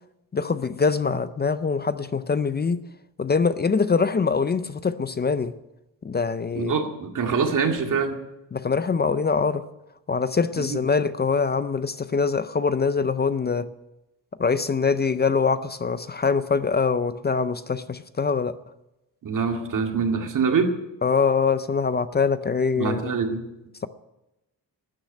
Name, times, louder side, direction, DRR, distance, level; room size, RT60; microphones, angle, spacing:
voice 1, 0.3-2.8 3.2-5.5 6.0-6.7 8.5-9.6 10.1-13.7 14.4-18.5 21.0-23.1, left 5 dB, 25° left, 13 dB, 0.5 m, -23 dB
voice 2, 6.6-8.2 10.6-10.8 19.2-20.7 22.8-23.4, right 5 dB, 50° right, 4 dB, 2.1 m, -24 dB
13.0 x 9.9 x 9.4 m, 0.95 s
wide cardioid pair, 145°, 41 cm